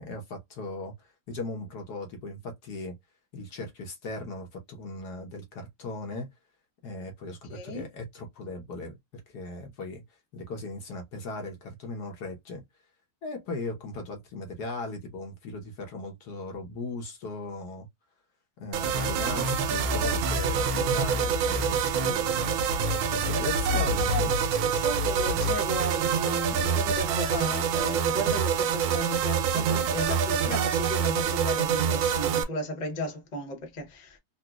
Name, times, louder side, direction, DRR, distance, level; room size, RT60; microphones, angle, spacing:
voice 1, 0.0-2.9 3.3-6.3 6.8-9.0 9.3-10.0 10.3-12.6 13.2-17.9 18.6-22.5 23.1-24.5, left 2 dB, 60° left, 1.4 m, -38 dB
voice 2, 7.5-7.9 24.1-24.3 24.7-34.2, equal, 35° left, 0.8 m, -34 dB
sound 1, 18.7-32.4, right 6 dB, 85° right, 1.5 m, -26 dB
4.0 x 2.3 x 2.3 m
omnidirectional pair, 2.2 m